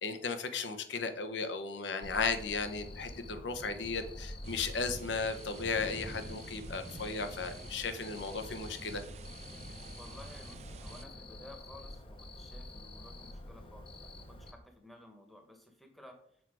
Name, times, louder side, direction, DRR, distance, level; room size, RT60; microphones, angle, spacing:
voice 1, 0.0-9.0, left 4 dB, 85° left, 8 dB, 0.9 m, -35 dB
Cricket, 2.0-14.5, left 1 dB, 30° left, 0.7 m, -47 dB
sound 1, 4.4-11.0, right 3 dB, 35° right, 0.4 m, -49 dB
voice 2, 10.0-16.2, left 1 dB, ahead, 3 dB, 1.0 m, -54 dB
6.5 x 4.6 x 4.8 m, 0.64 s
head